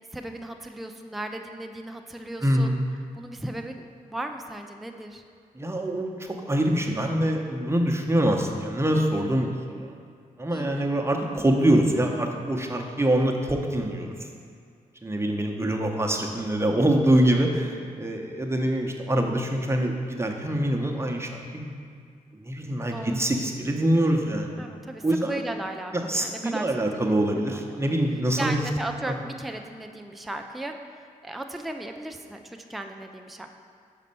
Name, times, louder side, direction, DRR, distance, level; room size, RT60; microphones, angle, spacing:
voice 1, 0.1-2.8 3.1-5.2 10.5-10.9 22.9-23.3 24.6-27.6 28.4-30.7 31.2-33.5, right 1 dB, ahead, 5 dB, 0.4 m, -36 dB
voice 2, 2.4-2.8 5.5-9.9 10.4-14.2 15.0-21.7 22.4-24.5 25.0-25.4 25.9-28.6 29.1-29.2, right 1 dB, 15° right, 1 dB, 0.8 m, -24 dB
5.3 x 4.1 x 5.4 m, 2.2 s
cardioid pair, 50°, 16 cm